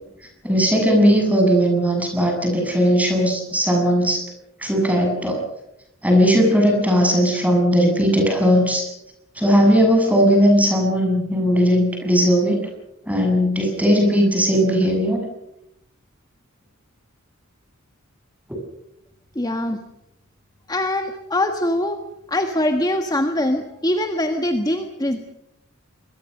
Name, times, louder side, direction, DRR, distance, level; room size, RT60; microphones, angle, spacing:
voice 1, 0.4-4.2 4.6-5.4 6.0-8.8 9.4-12.6 13.1-15.2, equal, 5° right, 2 dB, 7.3 m, -18 dB
voice 2, 19.3-19.8 20.7-22.0 22.3-25.3, left 1 dB, 20° left, 5 dB, 1.5 m, -23 dB
26.5 x 22.0 x 6.6 m, 0.82 s
head